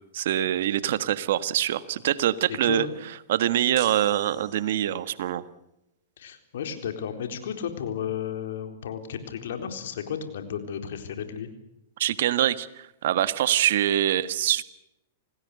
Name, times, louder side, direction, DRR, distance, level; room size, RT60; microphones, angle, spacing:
voice 1, 0.1-2.8 3.3-5.4 12.0-14.6, right 12 dB, 65° right, 14 dB, 1.5 m, -24 dB
voice 2, 2.5-2.9 6.2-11.5, left 8 dB, 70° left, 7 dB, 4.0 m, -33 dB
sound 1, 3.8-5.1, right 14 dB, 45° right, 2.5 m, -44 dB
27.5 x 18.5 x 6.7 m, 0.85 s
hypercardioid pair, 120°, 0 cm